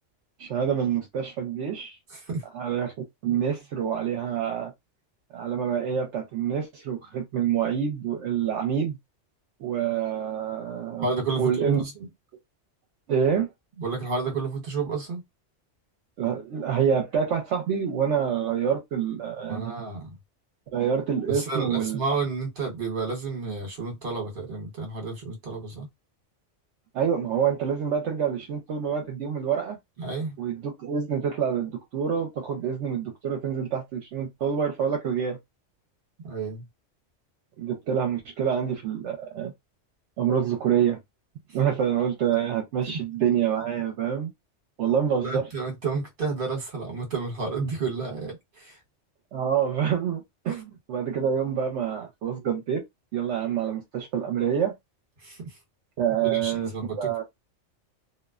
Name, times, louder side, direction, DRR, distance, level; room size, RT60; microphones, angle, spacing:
voice 1, 0.4-2.0 2.5-2.9 3.2-4.7 5.3-9.0 9.6-11.1 11.4-11.8 13.1-13.5 16.2-19.7 20.7-22.0 26.9-29.8 30.4-35.4 37.6-39.5 40.2-41.0 41.5-44.3 44.8-45.5 49.3-52.8 53.1-54.7 56.0-56.7 57.0-57.2, right 8 dB, 75° right, 0.9 m, -26 dB
voice 2, 2.1-2.4 11.0-12.1 13.8-15.2 19.5-20.2 21.3-25.9 30.0-30.4 36.2-36.6 45.2-48.8 50.5-50.6 55.2-55.6 56.2-57.2, right 4 dB, 45° right, 1.2 m, -31 dB
2.6 x 2.1 x 2.3 m
omnidirectional pair, 1.3 m